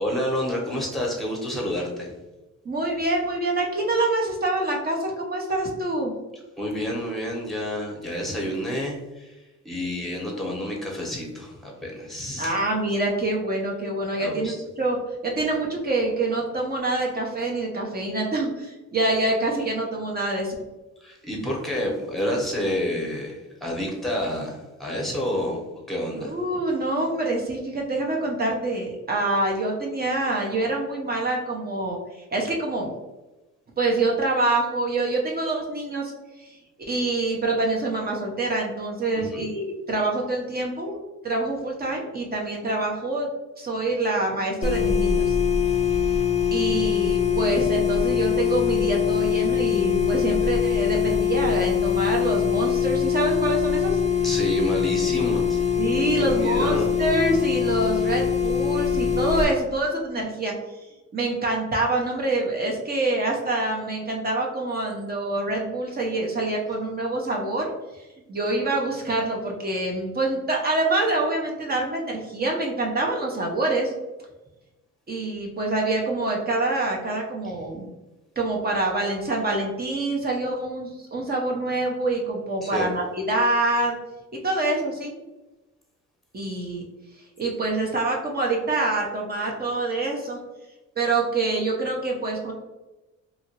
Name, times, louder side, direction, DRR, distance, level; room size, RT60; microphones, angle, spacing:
voice 1, 0.0-2.1 6.6-12.5 14.2-14.6 21.0-25.6 25.9-26.3 39.1-39.4 54.2-55.6 56.2-56.9 82.6-82.9, equal, ahead, -2 dB, 0.9 m, -29 dB
voice 2, 2.6-6.1 12.4-15.0 15.2-20.5 26.2-32.9 33.8-36.1 36.4-36.6 36.9-41.0 41.2-43.3 43.6-45.4 46.5-54.0 55.8-60.5 61.1-73.9 75.1-77.9 78.4-83.9 84.4-85.1 86.3-86.8 87.4-90.4 91.0-92.5, right 2 dB, 30° right, -1 dB, 0.6 m, -26 dB
sound 1, 44.6-59.4, left 8 dB, 25° left, 0.4 m, -23 dB
2.8 x 2.5 x 2.8 m, 1.1 s
cardioid pair, 90°, 30 cm